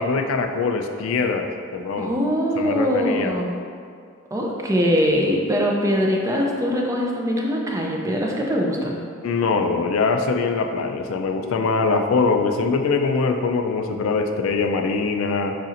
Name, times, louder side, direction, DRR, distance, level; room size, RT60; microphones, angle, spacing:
voice 1, 0.0-2.1 2.6-3.4 9.2-15.6, left 4 dB, 70° left, 5 dB, 0.3 m, -22 dB
voice 2, 2.0-3.6 4.3-9.0, equal, 15° right, -1 dB, 0.4 m, -22 dB
5.0 x 4.1 x 2.5 m, 2.2 s
head